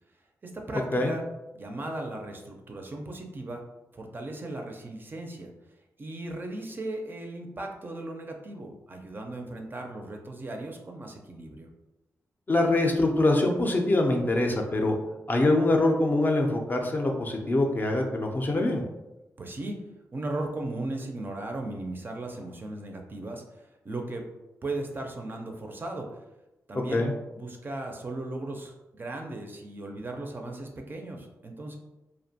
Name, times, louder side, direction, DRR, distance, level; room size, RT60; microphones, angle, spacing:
voice 1, 0.4-1.2 1.5-3.6 3.9-5.5 6.0-11.7 19.4-19.8 20.1-24.3 24.6-26.2 26.7-27.1 27.3-31.8, right 2 dB, 35° right, 3 dB, 0.4 m, -37 dB
voice 2, 12.5-15.0 15.3-18.8 26.9-27.1, left 2 dB, 35° left, 2 dB, 0.4 m, -24 dB
2.5 x 2.1 x 2.7 m, 0.97 s
cardioid pair, 90°, 6 cm